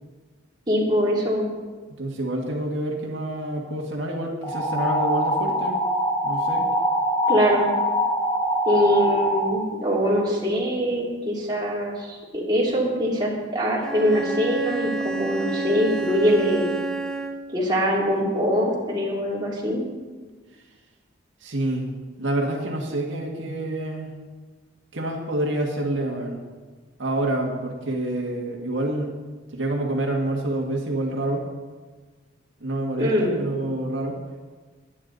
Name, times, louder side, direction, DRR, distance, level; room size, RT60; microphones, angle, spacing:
voice 1, 0.7-1.5 7.3-7.7 8.6-16.8 17.5-19.8 33.0-33.4, equal, 20° right, -4 dB, 3.0 m, -23 dB
voice 2, 2.0-5.8 6.2-6.7 21.4-21.9 22.2-24.1 24.9-26.4 27.0-29.1 29.5-31.5 32.6-34.2, right 1 dB, 70° right, -1 dB, 1.8 m, -27 dB
sound 1, 4.4-9.4, equal, 20° left, 2.4 m, -23 dB
Bowed string instrument, 13.8-17.6, right 3 dB, 5° left, 0.8 m, -29 dB
22.0 x 9.6 x 4.1 m, 1.4 s
head